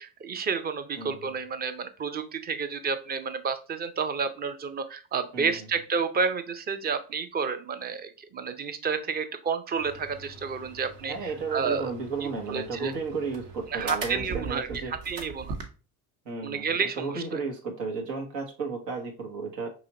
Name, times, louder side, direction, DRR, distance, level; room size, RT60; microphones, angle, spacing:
voice 1, 0.0-11.9 12.2-12.9 13.7-15.6 16.4-17.4, right 5 dB, 20° right, 10 dB, 0.4 m, -30 dB
sound 1, 9.8-15.7, right 3 dB, 55° right, 1.0 m, -41 dB
voice 2, 11.0-14.9 16.3-16.7 17.0-19.7, right 4 dB, 75° right, 2 dB, 1.0 m, -33 dB
4.9 x 3.0 x 2.8 m, 0.34 s
figure-of-eight pair, 60°, 49 cm